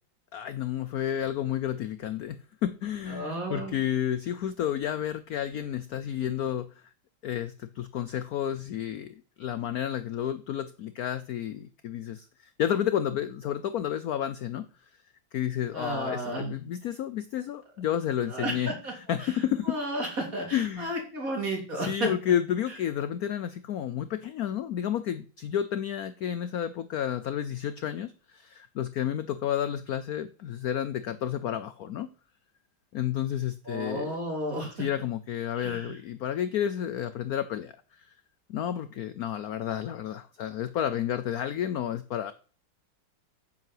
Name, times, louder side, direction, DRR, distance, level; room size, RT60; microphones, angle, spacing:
voice 1, 0.3-6.7 7.2-14.7 15.3-18.7 19.1-19.8 20.5-20.9 21.8-32.1 32.9-34.2 34.8-37.7 38.0-38.1 38.5-42.3, left 10 dB, 70° left, 13 dB, 0.9 m, -31 dB
voice 2, 3.1-3.7 15.7-16.6 18.3-18.9 19.2-19.3 19.6-22.1 33.7-34.7 35.5-36.0, right 1 dB, 45° right, 0 dB, 4.0 m, -32 dB
9.4 x 5.8 x 7.7 m, 0.40 s
omnidirectional pair, 2.1 m